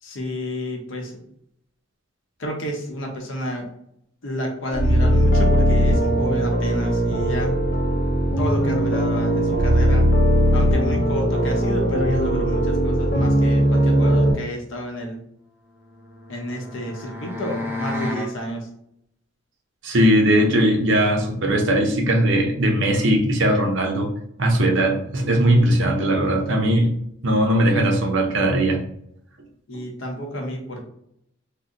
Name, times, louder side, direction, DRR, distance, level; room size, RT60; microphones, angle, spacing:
voice 1, 0.0-1.2 2.4-3.7 4.2-7.5 8.4-10.1 10.5-15.2 16.3-18.7 29.7-30.8, equal, 80° left, 1 dB, 0.8 m, -30 dB
sound 1, 4.7-14.3, equal, 50° left, 0.6 m, -19 dB
sound 2, 15.7-18.3, left 2 dB, 10° right, 0.5 m, -32 dB
voice 2, 19.8-24.1 24.4-26.9 27.2-28.8, right 1 dB, 70° right, 2 dB, 0.7 m, -19 dB
2.6 x 2.1 x 3.6 m, 0.72 s
head